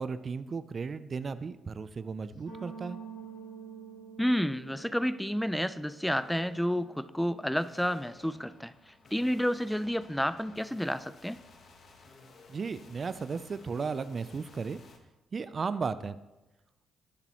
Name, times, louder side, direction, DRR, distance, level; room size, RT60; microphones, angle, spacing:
voice 1, 0.0-3.0 12.5-14.8 15.3-16.2, right 5 dB, 45° right, 13 dB, 0.6 m, -35 dB
sound 1, 1.2-1.4 1.8-2.5 3.1-3.5 4.6-5.2 6.0-15.0, left 3 dB, 60° left, 1.5 m, -57 dB
sound 2, 2.4-8.7, right 6 dB, 85° left, 4.3 m, -49 dB
voice 2, 4.2-11.4, equal, 5° left, 15 dB, 0.5 m, -30 dB
20.5 x 6.8 x 3.1 m, 1.0 s
hypercardioid pair, 45°, 0 cm